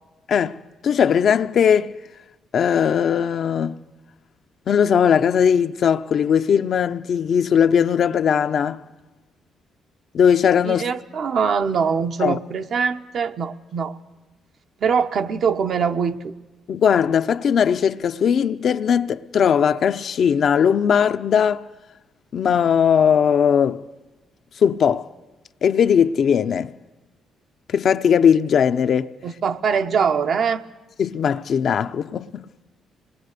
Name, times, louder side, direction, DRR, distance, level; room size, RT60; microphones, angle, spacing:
voice 1, 0.8-1.9 2.5-3.8 4.7-8.8 10.1-10.8 12.2-12.4 16.7-21.6 22.3-23.8 24.6-25.1 25.6-26.7 27.7-29.1 31.0-32.4, left 7 dB, 60° left, 0.7 m, -19 dB
voice 2, 10.6-14.0 14.8-16.3 29.2-30.6, right 6 dB, 60° right, 1.1 m, -23 dB
26.0 x 20.5 x 6.7 m
cardioid pair, 90°, 0 cm